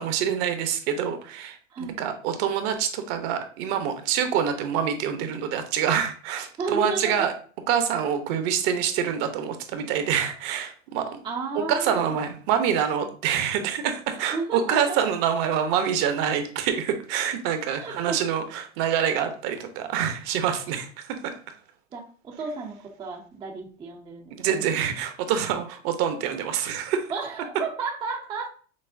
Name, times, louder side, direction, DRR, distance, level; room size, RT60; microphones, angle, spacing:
voice 1, 0.0-7.3 7.7-11.2 11.5-21.4 24.3-27.1, right 8 dB, 50° right, 8 dB, 0.7 m, -26 dB
voice 2, 6.6-7.3 11.2-12.2 14.1-15.0 17.8-18.2 21.9-24.6 27.1-28.5, right 4 dB, 15° right, 1 dB, 0.4 m, -33 dB
6.0 x 2.0 x 2.5 m, 0.43 s
hypercardioid pair, 115°, 40 cm